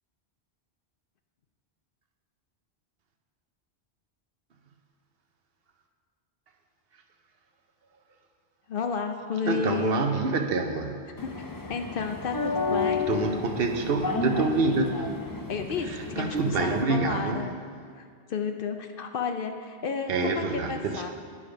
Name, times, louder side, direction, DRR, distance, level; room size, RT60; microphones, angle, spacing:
voice 1, 8.7-10.0 11.2-11.3 11.7-13.1 15.5-17.5 17.9-21.1, left 5 dB, 60° left, 6 dB, 0.7 m, -32 dB
voice 2, 9.5-11.1 13.1-15.1 15.9-17.5 20.1-21.1, right 3 dB, 65° right, 5 dB, 0.9 m, -27 dB
sound 1, 11.2-16.8, left 4 dB, 30° left, 0.4 m, -32 dB
9.7 x 5.0 x 6.0 m, 2.1 s
omnidirectional pair, 1.1 m